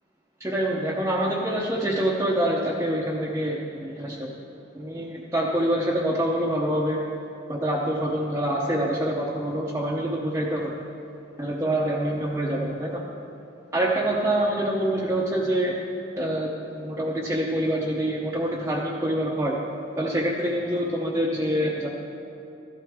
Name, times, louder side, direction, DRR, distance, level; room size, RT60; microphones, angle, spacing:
voice 1, 0.4-4.3 4.7-7.0 7.5-10.7 11.4-13.0 13.7-15.7 16.1-19.6 20.0-21.9, right 1 dB, 15° right, -4 dB, 0.8 m, -26 dB
14.5 x 12.0 x 3.6 m, 2.8 s
head